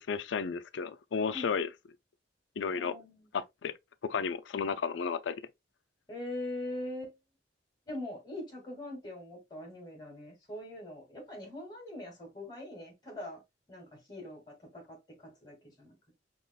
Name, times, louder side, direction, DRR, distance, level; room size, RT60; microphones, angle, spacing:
voice 1, 0.1-1.7 2.6-2.9 3.3-3.7 4.1-5.4, left 5 dB, 85° left, 0.4 m, -33 dB
voice 2, 2.7-3.3 6.1-7.1 7.9-13.4 13.7-15.9, left 1 dB, 25° left, 2.2 m, -42 dB
5.5 x 3.0 x 2.3 m
head